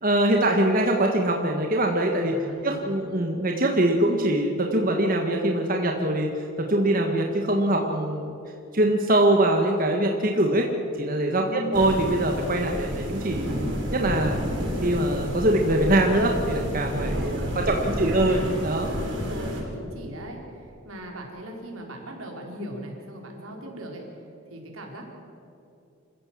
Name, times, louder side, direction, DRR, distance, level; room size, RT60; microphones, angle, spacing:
voice 1, 0.0-2.4 2.6-8.3 8.7-10.7 11.0-13.5 13.9-14.4 14.8-18.9, right 1 dB, 40° right, 2 dB, 1.6 m, -23 dB
voice 2, 2.3-2.9 11.4-11.8 17.1-18.4 19.1-24.1 24.5-25.1, equal, 85° right, 0 dB, 4.6 m, -39 dB
sound 1, 11.7-19.6, equal, 60° right, 6.6 m, -30 dB
26.5 x 15.5 x 7.6 m, 2.7 s
head